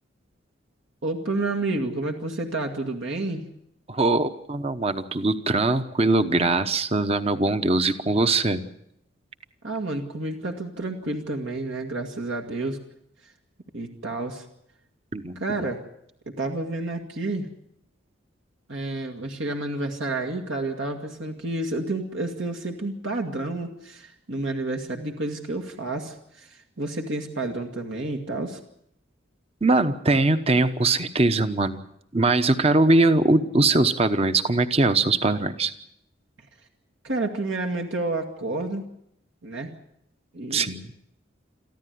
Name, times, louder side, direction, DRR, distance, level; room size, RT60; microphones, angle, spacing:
voice 1, 1.0-3.5 9.6-12.8 13.7-14.5 15.4-15.8 16.3-17.5 18.7-28.6 37.0-38.8 39.4-39.7 40.3-40.7, right 2 dB, 70° right, 2 dB, 2.0 m, -30 dB
voice 2, 3.9-8.6 15.1-15.6 29.6-31.8 32.1-35.7 40.5-40.9, right 2 dB, 30° right, 11 dB, 1.0 m, -21 dB
23.5 x 14.5 x 9.4 m, 0.75 s
head